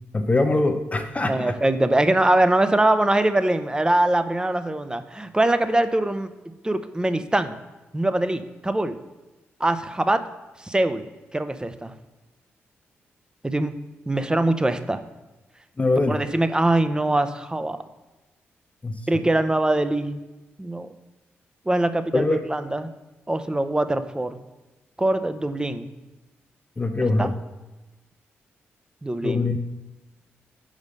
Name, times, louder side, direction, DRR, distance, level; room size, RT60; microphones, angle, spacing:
voice 1, 0.1-1.5 15.8-16.2 18.8-19.0 22.1-22.4 26.8-27.3 29.2-29.6, left 2 dB, 25° left, 7 dB, 0.7 m, -22 dB
voice 2, 1.3-6.3 6.6-7.6 7.9-9.0 9.6-10.2 10.6-11.1 11.3-11.9 13.4-13.7 14.1-15.0 16.1-17.8 19.1-20.2 20.6-20.9 21.7-22.9 23.3-24.4 25.0-25.9 27.2-27.3 29.0-29.5, right 1 dB, 15° right, 10 dB, 0.7 m, -22 dB
5.2 x 5.1 x 5.3 m, 1.1 s
supercardioid pair, 50°, 5 cm